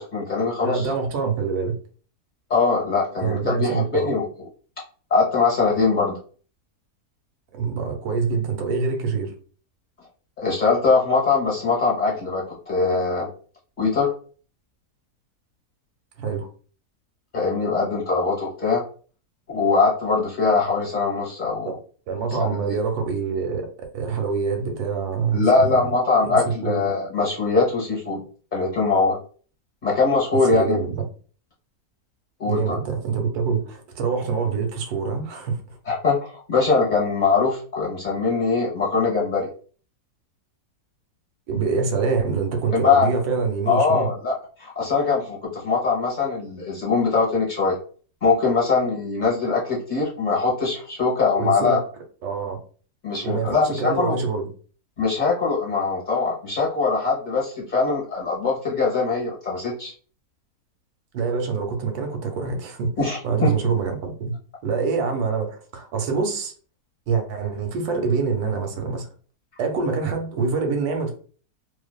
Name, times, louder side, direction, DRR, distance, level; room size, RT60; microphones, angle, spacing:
voice 1, 0.0-0.9 2.5-4.3 5.1-6.2 10.4-13.3 13.8-14.1 17.3-18.8 19.5-21.7 22.7-22.8 25.3-28.2 28.5-29.2 29.8-30.8 32.4-32.8 35.9-39.5 42.7-43.1 43.7-47.8 48.2-51.8 53.0-54.2 55.0-59.9 63.0-63.5, left 4 dB, 40° left, -4 dB, 0.8 m, -22 dB
voice 2, 0.6-1.7 3.2-4.1 7.5-9.3 16.2-16.5 21.6-21.8 22.1-23.7 23.9-25.5 26.2-26.8 30.3-31.0 32.4-35.8 41.5-44.1 51.4-51.8 52.2-52.6 53.2-54.5 61.1-62.9 63.2-64.3 64.6-66.5 67.1-69.1 69.6-71.1, right 5 dB, 80° right, 4 dB, 1.1 m, -25 dB
2.5 x 2.3 x 2.2 m, 0.41 s
omnidirectional pair, 1.7 m